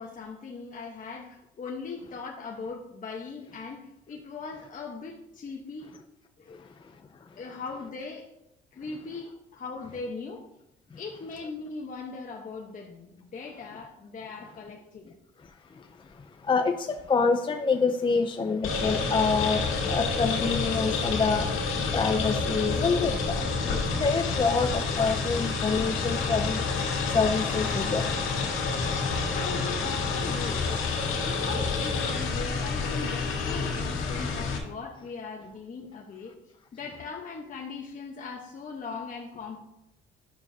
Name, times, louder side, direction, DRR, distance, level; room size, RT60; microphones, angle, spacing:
voice 1, 0.0-5.9 6.4-6.7 7.4-8.3 8.7-10.4 11.0-15.1 27.0-27.1 29.0-30.7 31.2-36.3 36.7-39.6, left 4 dB, 40° left, -1 dB, 1.1 m, -39 dB
voice 2, 16.5-19.6 19.9-21.5 21.9-26.6 27.1-28.0, left 4 dB, 25° left, 6 dB, 0.5 m, -26 dB
sound 1, 18.6-34.6, left 4 dB, 90° left, 2.0 m, -28 dB
9.6 x 6.3 x 2.7 m, 0.85 s
cardioid pair, 90°, 20 cm